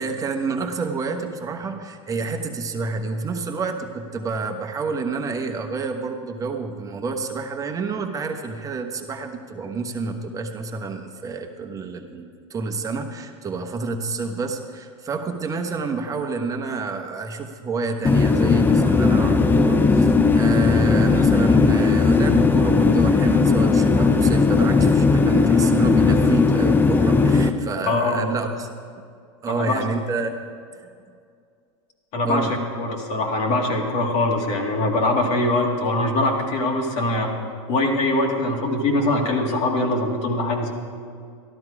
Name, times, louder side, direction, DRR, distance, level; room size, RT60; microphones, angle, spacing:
voice 1, 0.0-28.7 29.4-30.3 32.2-32.5, right 4 dB, 20° right, 5 dB, 1.3 m, -29 dB
sound 1, 18.0-27.5, left 4 dB, 15° left, 0.6 m, -17 dB
voice 2, 27.8-28.3 29.5-29.7 32.1-37.3 37.7-40.7, left 2 dB, 45° left, 1 dB, 2.1 m, -22 dB
12.5 x 12.5 x 4.9 m, 2.3 s
hypercardioid pair, 110°, 16 cm